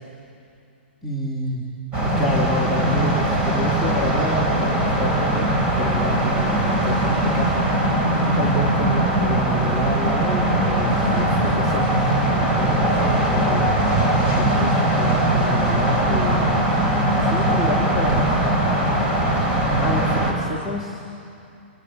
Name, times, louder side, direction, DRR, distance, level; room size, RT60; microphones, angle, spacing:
voice 1, 1.0-1.7 2.0-13.9 14.4-16.7 17.2-18.6 19.7-21.0, equal, 5° right, -4 dB, 2.0 m, -29 dB
sound 1, 1.9-20.3, right 1 dB, 20° right, 4.4 m, -20 dB
27.5 x 25.0 x 8.5 m, 2.5 s
hypercardioid pair, 160°, 6 cm